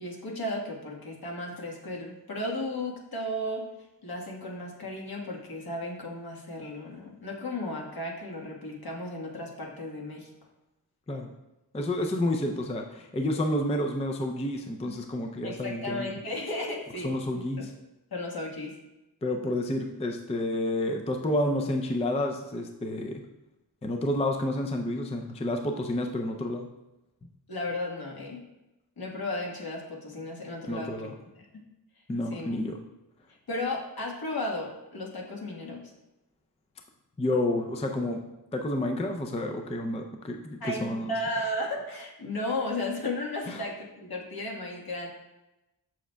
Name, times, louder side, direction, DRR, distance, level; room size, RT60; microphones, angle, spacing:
voice 1, 0.0-3.6 4.0-10.3 14.8-15.0 15.4-17.7 18.1-18.7 27.5-28.4 29.0-31.4 32.3-32.5 33.5-35.8 40.6-45.1, left 1 dB, 60° left, -1 dB, 1.4 m, -34 dB
voice 2, 11.7-16.1 17.0-17.7 19.2-23.2 23.8-26.7 30.7-31.1 32.1-32.8 37.2-38.2 38.5-41.1 43.5-43.6, left 1 dB, 15° left, 3 dB, 0.4 m, -30 dB
7.4 x 6.7 x 2.2 m, 0.99 s
wide cardioid pair, 130°, 41 cm